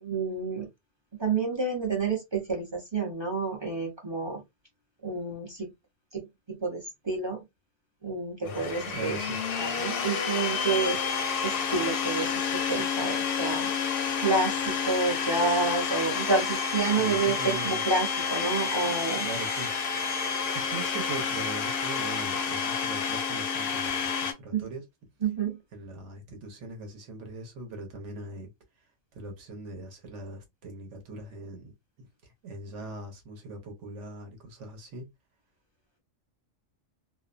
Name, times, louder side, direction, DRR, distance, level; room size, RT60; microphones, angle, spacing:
voice 1, 0.0-0.7 1.2-4.4 5.0-5.7 6.1-7.4 8.0-9.2 9.6-19.3 24.5-24.7 25.2-25.6, right 4 dB, 30° right, 0.6 m, -29 dB
Domestic sounds home sounds, 8.4-24.3, left 6 dB, 60° left, 0.6 m, -29 dB
voice 2, 8.9-9.4 17.0-17.8 19.2-19.7 20.5-24.8 25.7-28.5 29.1-35.1, right 2 dB, 70° right, 1.1 m, -41 dB
2.5 x 2.1 x 2.4 m
omnidirectional pair, 1.3 m